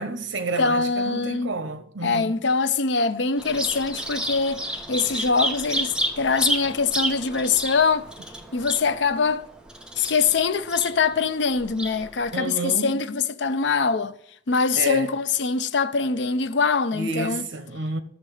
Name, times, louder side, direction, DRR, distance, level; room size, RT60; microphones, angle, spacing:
voice 1, 0.0-2.3 12.3-13.0 14.8-15.1 16.9-18.0, right 2 dB, 80° right, 1.1 m, -30 dB
voice 2, 0.6-1.5 2.0-8.1 8.5-9.4 10.0-14.1 14.5-17.5, left 4 dB, 70° left, 0.6 m, -23 dB
Bird vocalization bird call bird song, 3.4-12.4, right 1 dB, 5° right, 0.9 m, -31 dB
12.5 x 6.6 x 4.9 m
head